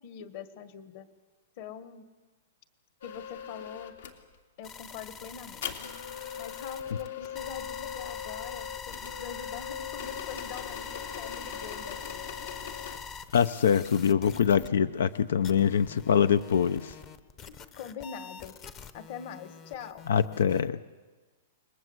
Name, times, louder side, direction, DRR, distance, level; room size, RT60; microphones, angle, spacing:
voice 1, 0.0-1.1 1.6-2.0 3.0-3.9 4.6-5.9 6.4-12.2 14.3-14.6 17.5-18.5 18.9-20.0, left 7 dB, 35° left, 11 dB, 1.6 m, -43 dB
sound 1, 3.0-4.2 5.6-13.1 14.4-14.7 14.9-16.2 17.4-17.8, left 8 dB, 65° left, 2.9 m, -40 dB
sound 2, 4.6-14.7 15.1-15.2 15.4-20.6, left 6 dB, 20° left, 0.9 m, -44 dB
voice 2, 13.3-16.9 20.1-20.8, left 7 dB, 85° left, 16 dB, 0.7 m, -24 dB
28.5 x 21.0 x 8.0 m, 1.3 s
supercardioid pair, 175°, 0 cm